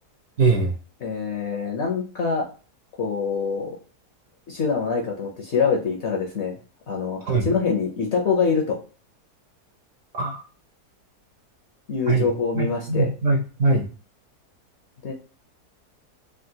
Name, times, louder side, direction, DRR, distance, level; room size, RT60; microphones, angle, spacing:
voice 1, 0.4-0.7 7.3-7.5 10.1-10.4 12.1-12.3 12.5-13.9, right 3 dB, 60° right, 3 dB, 0.9 m, -21 dB
voice 2, 1.0-2.5 3.0-3.8 4.5-6.6 6.9-8.8 11.9-13.1 15.0-15.1, left 5 dB, 60° left, 1 dB, 0.7 m, -25 dB
3.6 x 2.2 x 2.7 m, 0.37 s
omnidirectional pair, 1.7 m